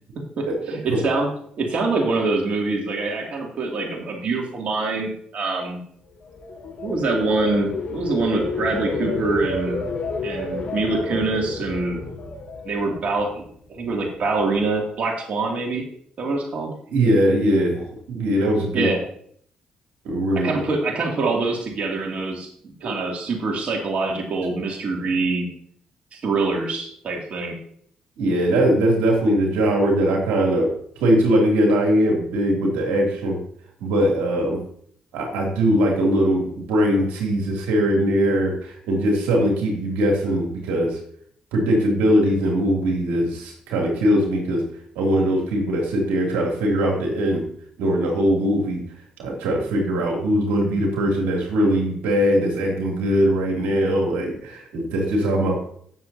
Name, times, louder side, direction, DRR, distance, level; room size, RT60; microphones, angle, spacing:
voice 1, 0.2-1.3 1.6-5.8 6.8-9.9 10.2-12.0 12.6-15.9 16.2-16.7 18.7-19.0 20.4-25.5 26.1-27.6, right 3 dB, 55° right, -1 dB, 2.6 m, -25 dB
sound 1, 6.2-13.4 13.8-14.1, left 3 dB, 65° left, 3.9 m, -30 dB
voice 2, 16.9-18.9 20.0-20.5 22.8-22.9 28.2-30.7 31.0-33.4 33.8-34.6 35.1-41.0 41.5-44.6 44.9-47.4 47.8-48.8 49.2-55.6, equal, 85° right, -1 dB, 2.8 m, -21 dB
17.0 x 7.2 x 2.8 m, 0.63 s
supercardioid pair, 60°, 3 cm